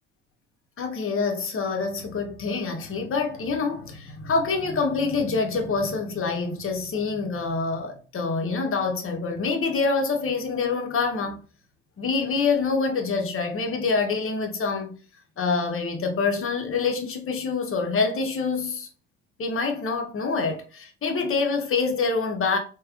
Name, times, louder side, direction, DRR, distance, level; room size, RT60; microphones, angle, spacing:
voice 1, 0.8-11.4 12.0-15.0 15.4-18.9 19.4-22.6, left 4 dB, 40° left, 0.9 m, -26 dB
3.3 x 2.3 x 2.4 m
hypercardioid pair, 50°, 35 cm